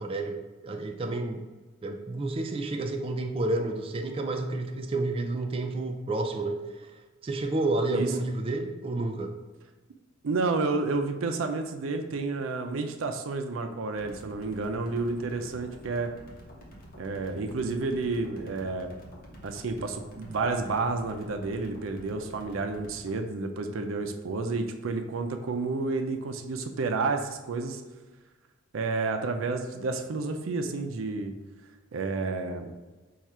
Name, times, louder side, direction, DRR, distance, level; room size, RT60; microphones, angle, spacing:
voice 1, 0.0-1.5 1.8-6.9 7.2-9.3, right 2 dB, 30° right, 3 dB, 0.3 m, -30 dB
voice 2, 10.2-16.1 17.0-18.9 19.4-27.8 28.7-31.3 31.9-32.7, right 3 dB, 85° right, 5 dB, 0.5 m, -30 dB
sound 1, 14.0-23.1, equal, 50° left, 0.9 m, -48 dB
4.7 x 2.4 x 4.2 m, 1.2 s
head